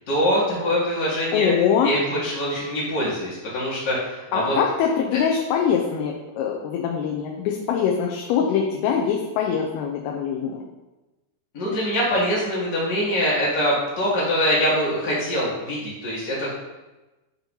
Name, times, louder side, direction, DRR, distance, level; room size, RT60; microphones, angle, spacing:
voice 1, 0.1-1.5 1.8-4.5 11.5-16.7, equal, 55° left, -7 dB, 0.9 m, -24 dB
voice 2, 1.3-1.9 4.3-10.6, left 7 dB, 85° left, 0 dB, 2.6 m, -23 dB
8.0 x 3.0 x 5.3 m, 1.1 s
omnidirectional pair, 4.5 m